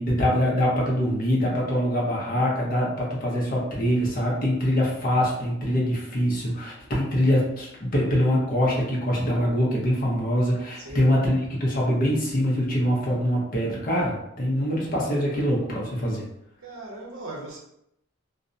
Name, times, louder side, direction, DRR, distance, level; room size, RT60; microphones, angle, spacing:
voice 1, 0.0-16.3, equal, 40° left, -3 dB, 0.7 m, -24 dB
voice 2, 10.8-11.2 16.6-17.6, right 2 dB, 85° right, -3 dB, 0.8 m, -38 dB
2.4 x 2.0 x 2.5 m, 0.78 s
head